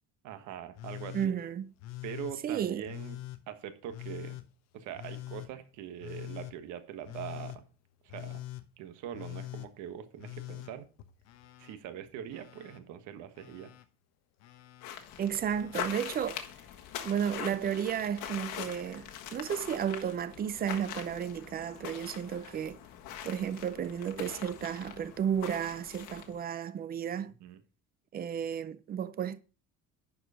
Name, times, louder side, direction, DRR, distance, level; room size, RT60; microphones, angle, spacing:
voice 1, 0.2-1.4 2.0-3.2 3.5-4.4 4.7-7.7 8.0-8.4 8.8-10.9 11.6-13.7 27.2-27.6, right 9 dB, 75° right, 1.4 m, -43 dB
Telephone, 0.8-1.3 1.8-2.4 2.8-3.4 3.9-4.5 4.9-5.5 6.0-6.5 7.0-7.6 8.1-8.6 9.1-9.7 10.2-11.8 12.0-12.8 13.3-13.8 14.4-14.9 15.4-15.9 17.1-17.2, left 16 dB, 60° left, 0.9 m, -44 dB
voice 2, 1.1-1.7 2.4-2.8 15.2-16.4 17.0-22.8 23.2-27.3 28.1-29.4, right 8 dB, 30° right, 0.5 m, -33 dB
sound 1, 14.8-26.4, left 10 dB, 80° left, 1.6 m, -43 dB
11.0 x 4.9 x 5.0 m
cardioid pair, 160°, 30 cm